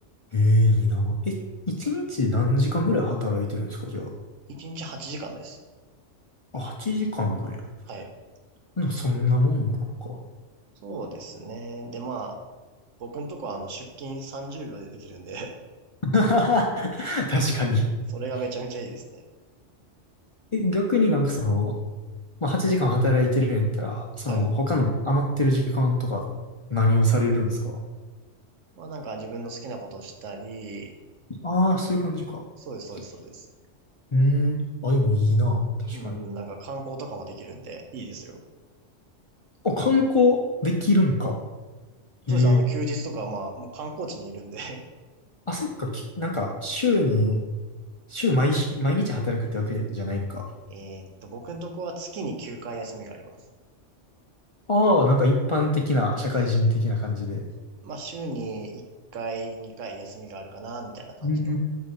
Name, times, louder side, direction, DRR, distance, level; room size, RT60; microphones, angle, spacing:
voice 1, 0.3-1.4 1.7-4.1 6.5-7.6 8.8-10.2 16.0-17.9 20.5-21.7 22.4-26.3 26.7-27.8 31.3-32.5 34.1-36.2 39.6-41.4 42.3-42.6 45.5-47.4 48.1-50.5 54.7-57.4 61.2-61.6, left 1 dB, 55° left, 0 dB, 0.3 m, -23 dB
voice 2, 4.5-5.6 7.9-8.1 10.8-12.4 13.0-15.5 18.1-19.2 24.3-24.4 28.8-30.9 32.6-33.5 35.9-38.4 42.3-44.8 50.7-53.4 57.8-58.8 59.1-61.5, right 3 dB, 80° right, 4 dB, 1.2 m, -36 dB
7.6 x 2.8 x 5.3 m, 1.3 s
omnidirectional pair, 1.3 m